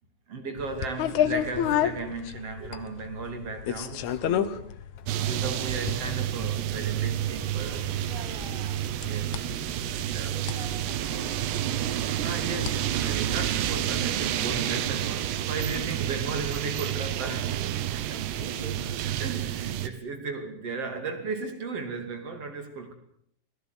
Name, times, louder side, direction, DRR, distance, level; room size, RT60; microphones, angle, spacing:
voice 1, 0.3-4.7 5.2-7.9 9.0-9.5 10.0-10.4 12.2-17.6 18.1-18.2 19.2-22.9, right 4 dB, 40° right, 3.3 m, -35 dB
sound 1, 0.6-14.8, left 10 dB, 70° left, 1.8 m, -33 dB
voice 2, 5.0-5.4 8.0-9.0 10.3-11.4 18.1-19.0, right 1 dB, 40° left, 0.6 m, -46 dB
sound 2, 5.1-19.9, right 12 dB, 85° right, 3.3 m, -29 dB
26.0 x 17.5 x 8.1 m
omnidirectional pair, 4.8 m